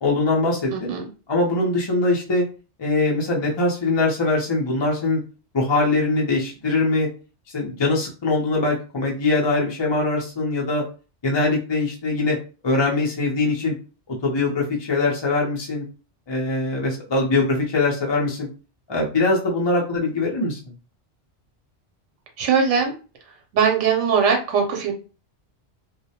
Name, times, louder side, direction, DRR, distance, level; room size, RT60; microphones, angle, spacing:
voice 1, 0.0-0.9 1.3-2.4 2.8-5.2 5.5-7.1 7.5-10.8 11.2-12.4 12.6-13.8 14.1-15.9 16.3-18.5 18.9-20.6, left 3 dB, 35° left, -2 dB, 0.4 m, -22 dB
voice 2, 0.7-1.1 22.4-22.9 23.5-24.9, right 6 dB, 85° right, 2 dB, 0.9 m, -20 dB
2.2 x 2.0 x 2.7 m, 0.34 s
omnidirectional pair, 1.2 m